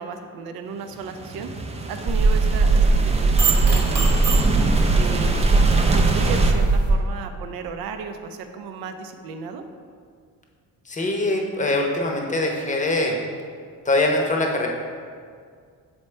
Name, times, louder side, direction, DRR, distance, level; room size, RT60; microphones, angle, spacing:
voice 1, 0.0-1.5 1.9-4.3 5.0-5.4 5.9-9.6, right 5 dB, 80° right, 7 dB, 0.6 m, -34 dB
sound 1, 0.9-6.5, right 2 dB, 20° right, 0.5 m, -27 dB
sound 2, 2.1-6.9, right 3 dB, 50° right, 1.0 m, -19 dB
voice 2, 10.9-13.2 13.9-14.7, left 2 dB, 20° left, 1 dB, 0.8 m, -22 dB
7.0 x 4.3 x 3.3 m, 2.1 s
cardioid pair, 120°, 36 cm